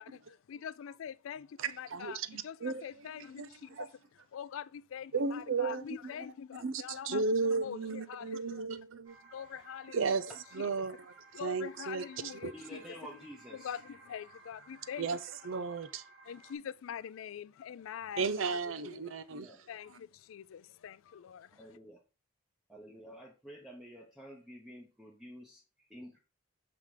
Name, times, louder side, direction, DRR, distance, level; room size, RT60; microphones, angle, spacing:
voice 1, 0.0-3.9 4.3-8.6 9.3-10.2 10.6-11.0 11.3-13.1 13.5-15.1 16.3-19.1 19.7-21.6, left 8 dB, 70° left, 0.3 m, -44 dB
voice 2, 1.6-2.8 3.1-3.9 5.1-6.1 6.6-9.2 9.9-10.3 10.5-11.1 11.4-12.1 12.4-12.5 15.0-15.2 15.4-16.0 18.2-19.5, right 4 dB, 70° right, 0.5 m, -34 dB
sound 1, 9.0-16.5, right 3 dB, 40° right, 2.5 m, -58 dB
voice 3, 12.5-13.7 19.3-19.6 21.6-22.0 22.7-26.2, equal, ahead, 0.8 m, -50 dB
5.8 x 3.5 x 5.0 m
head